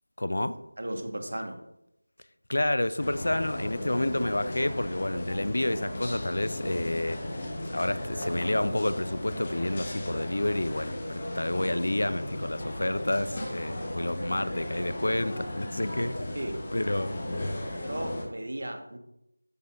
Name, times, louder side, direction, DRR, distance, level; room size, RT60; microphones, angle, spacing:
voice 1, 0.2-0.6 2.5-7.2 7.7-16.4 16.7-17.2, left 1 dB, 65° left, 13 dB, 0.5 m, -29 dB
voice 2, 0.8-1.6 16.3-16.6 17.8-19.0, right 1 dB, 70° right, 4 dB, 1.4 m, -35 dB
sound 1, 3.0-18.3, left 1 dB, 25° left, 1.1 m, -36 dB
12.0 x 4.1 x 2.5 m, 0.81 s
figure-of-eight pair, 175°, 0 cm